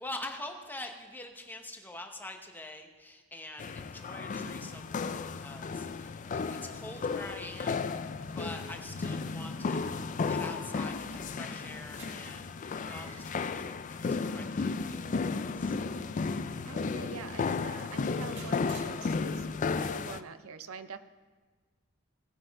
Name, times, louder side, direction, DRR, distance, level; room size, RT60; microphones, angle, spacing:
voice 1, 0.0-9.9 10.2-15.8, left 1 dB, 10° left, 4 dB, 0.9 m, -45 dB
sound 1, 3.6-20.2, left 4 dB, 35° left, 0.3 m, -34 dB
sound 2, 4.3-19.8, left 2 dB, 75° left, 0.7 m, -52 dB
sound 3, 11.5-19.6, right 3 dB, 60° right, 1.9 m, -56 dB
voice 2, 16.7-19.5 19.8-21.0, right 5 dB, 80° right, 11 dB, 0.6 m, -45 dB
17.5 x 5.9 x 4.7 m, 1.4 s
head